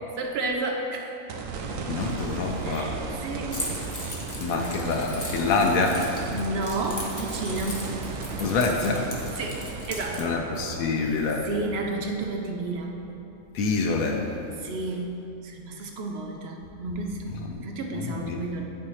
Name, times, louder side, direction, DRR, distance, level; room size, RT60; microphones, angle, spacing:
voice 1, 0.2-1.2 2.6-3.6 5.4-5.9 6.3-7.9 9.3-10.4 11.4-13.1 14.6-18.6, right 2 dB, 60° right, 2 dB, 0.8 m, -32 dB
sound 1, 1.3-13.6 14.1-14.2 17.5-17.6, right 4 dB, 80° right, 1.0 m, -36 dB
voice 2, 1.9-2.9 4.4-6.0 8.4-9.1 10.2-11.5 13.5-14.2 17.5-17.7 17.9-18.4, left 4 dB, 90° left, 1 dB, 1.1 m, -26 dB
Keys jangling, 3.5-10.2, left 1 dB, 15° left, 0.7 m, -38 dB
11.0 x 4.4 x 3.1 m, 2.7 s
omnidirectional pair, 1.4 m